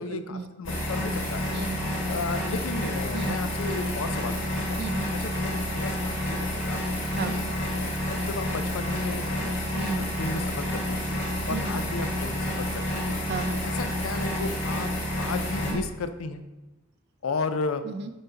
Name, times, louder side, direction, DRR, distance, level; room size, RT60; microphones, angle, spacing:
voice 1, 0.0-0.5 1.5-2.1 3.1-3.4 4.8-5.1 7.1-7.4 9.7-10.1 11.5-11.8 13.3-13.6 15.7-15.8 17.8-18.1, right 3 dB, 50° right, 10 dB, 0.4 m, -33 dB
voice 2, 0.6-1.5 2.1-4.8 5.2-6.8 7.2-9.6 9.9-11.2 11.5-13.2 13.6-14.9 15.2-16.4 17.2-17.8, left 4 dB, 80° left, 10 dB, 0.5 m, -34 dB
sound 1, 0.6-15.7, left 1 dB, 60° left, 2.1 m, -29 dB
6.3 x 4.0 x 3.8 m, 1.1 s
head